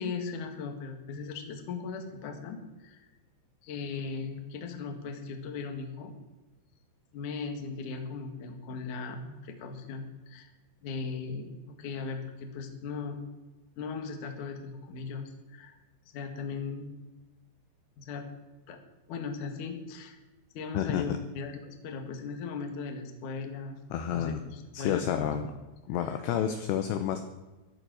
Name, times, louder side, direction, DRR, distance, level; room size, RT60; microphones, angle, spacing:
voice 1, 0.0-3.1 3.6-6.1 7.1-10.5 10.8-13.2 13.8-15.7 16.1-16.9 18.0-18.3 18.7-18.8 19.1-20.2 20.5-23.8 24.1-25.2 26.1-26.2, left 5 dB, 55° left, 5 dB, 2.5 m, -38 dB
voice 2, 20.7-21.2 23.9-24.4 24.7-25.5 25.9-27.2, left 9 dB, 75° left, 8 dB, 2.7 m, -30 dB
14.0 x 12.5 x 6.3 m, 1.2 s
omnidirectional pair, 5.6 m